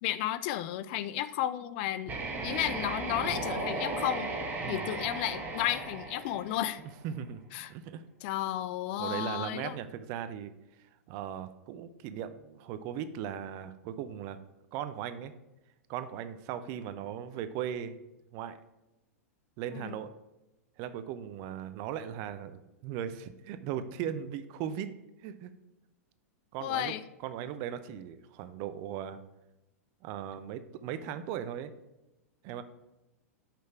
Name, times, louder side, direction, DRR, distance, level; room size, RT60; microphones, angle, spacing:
voice 1, 0.0-2.1 2.4-4.3 4.7-6.8 7.5-7.7 8.2-9.7 19.7-20.0 26.6-27.0, left 13 dB, 45° left, 14 dB, 0.4 m, -33 dB
sound 1, 2.0-7.0, right 2 dB, 25° right, 1.3 m, -36 dB
voice 2, 4.6-5.0 7.0-7.4 7.7-8.0 8.9-10.5 10.8-14.4 14.7-15.3 15.9-18.0 18.3-18.6 19.6-20.1 20.8-24.9 25.2-25.5 26.5-26.9 27.2-29.2 30.0-31.7 32.4-32.6, right 9 dB, 40° right, 11 dB, 0.6 m, -38 dB
5.9 x 5.2 x 4.5 m, 0.97 s
figure-of-eight pair, 100°, 8 cm